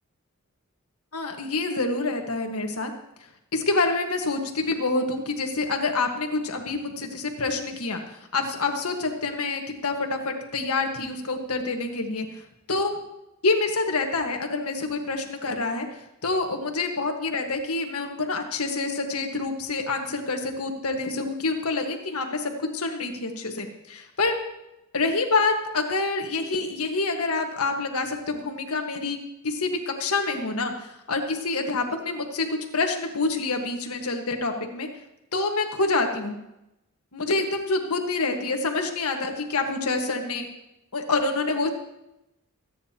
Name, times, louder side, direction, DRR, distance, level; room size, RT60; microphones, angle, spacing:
voice 1, 1.1-2.9 3.5-8.0 8.3-12.3 12.7-13.0 13.4-15.9 16.2-24.4 24.9-29.2 29.4-32.5 32.7-34.9 35.3-36.4 37.1-40.5 40.9-41.7, left 3 dB, 80° left, 4 dB, 1.6 m, -27 dB
24.5 x 9.5 x 2.9 m, 0.90 s
head